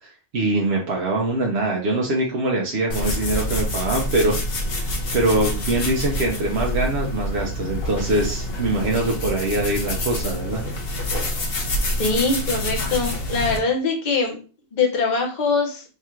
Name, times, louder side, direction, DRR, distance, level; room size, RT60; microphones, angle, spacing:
voice 1, 0.0-4.4 4.7-10.6, right 2 dB, 70° right, -1 dB, 1.0 m, -23 dB
sound 1, 2.9-13.6, left 1 dB, 60° left, 1.1 m, -27 dB
voice 2, 12.0-14.4 14.7-15.8, left 4 dB, 45° left, 1 dB, 1.0 m, -22 dB
3.7 x 2.4 x 4.3 m, 0.36 s
omnidirectional pair, 1.1 m